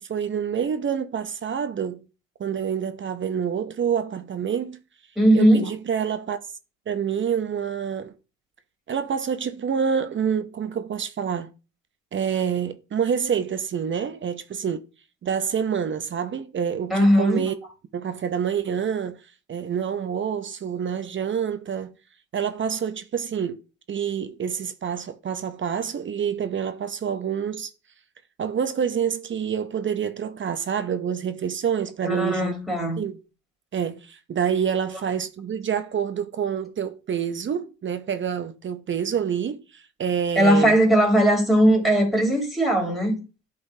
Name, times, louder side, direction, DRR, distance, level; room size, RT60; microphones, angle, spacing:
voice 1, 0.0-2.0 2.4-4.8 5.3-6.4 6.9-8.1 8.9-11.5 12.1-14.9 15.2-17.5 17.9-19.2 19.5-21.9 22.3-23.6 23.9-27.7 28.4-32.5 33.0-33.2 33.7-40.8, right 7 dB, 40° right, 0.6 m, -27 dB
voice 2, 5.2-5.7 16.9-17.4 32.0-33.0 40.3-43.2, equal, ahead, 3.0 m, -19 dB
11.0 x 3.9 x 2.7 m
cardioid pair, 90°, 30 cm